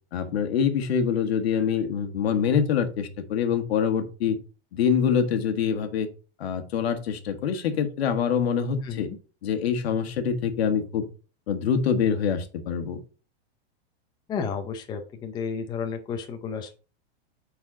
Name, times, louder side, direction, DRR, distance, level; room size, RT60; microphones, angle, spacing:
voice 1, 0.1-4.4 4.7-6.1 6.4-9.1 9.4-11.1 11.5-13.0, left 7 dB, 75° left, 8 dB, 1.3 m, -25 dB
voice 2, 8.8-9.2 14.3-16.7, left 6 dB, 15° left, 5 dB, 0.6 m, -32 dB
8.6 x 4.1 x 3.7 m, 0.35 s
supercardioid pair, 150°, 31 cm